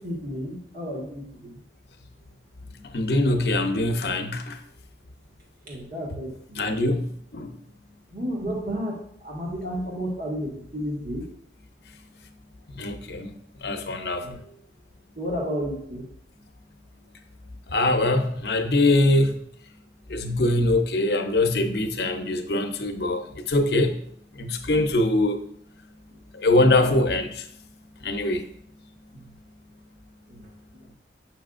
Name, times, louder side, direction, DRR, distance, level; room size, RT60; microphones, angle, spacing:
voice 1, 0.0-1.6 5.7-6.7 8.1-11.2 14.2-14.4 15.2-16.0 28.0-28.1 29.1-29.3 30.3-30.5, equal, 50° right, -3 dB, 1.6 m, -32 dB
voice 2, 2.9-4.6 6.6-7.6 12.7-13.3 13.6-14.4 17.7-19.4 20.1-23.9 24.3-25.4 26.3-27.5 28.0-28.4, left 2 dB, 65° left, 7 dB, 0.7 m, -23 dB
7.7 x 5.6 x 2.5 m, 0.65 s
head